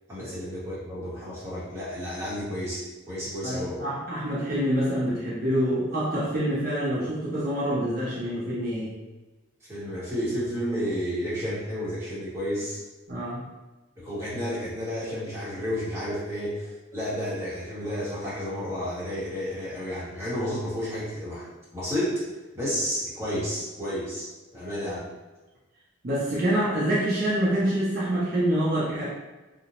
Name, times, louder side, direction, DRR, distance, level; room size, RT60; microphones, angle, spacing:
voice 1, 0.1-3.8 9.7-12.8 14.0-22.2 22.5-25.1, equal, 15° right, -10 dB, 0.9 m, -31 dB
voice 2, 3.4-8.9 13.1-13.4 26.0-29.0, right 1 dB, 45° right, -8 dB, 0.5 m, -26 dB
2.8 x 2.0 x 2.9 m, 1.2 s
head